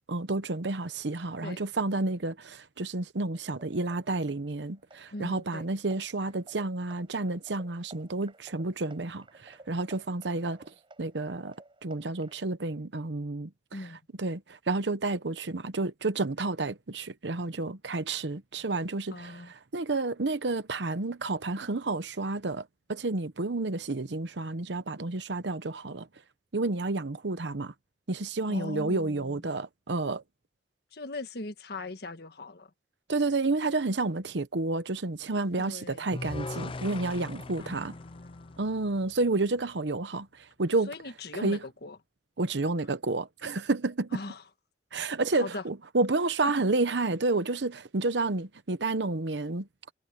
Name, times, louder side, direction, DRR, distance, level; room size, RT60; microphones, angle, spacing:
voice 1, 0.1-10.7 11.0-11.6 11.8-13.5 14.2-26.1 26.5-27.7 28.1-30.2 33.1-37.9 38.6-40.9 41.3-41.6 42.4-44.2 44.9-49.7, right 2 dB, 75° right, 1.0 m, -30 dB
sound 1, 3.3-12.4, right 2 dB, 30° right, 7.8 m, -56 dB
voice 2, 5.1-5.7 13.7-14.0 19.1-19.5 28.5-29.4 30.9-32.7 35.6-36.1 37.6-38.7 40.9-42.0 44.1-44.4 45.3-45.6, left 2 dB, 65° left, 1.5 m, -40 dB
sound 2, 36.1-39.3, left 2 dB, 30° left, 0.5 m, -40 dB
head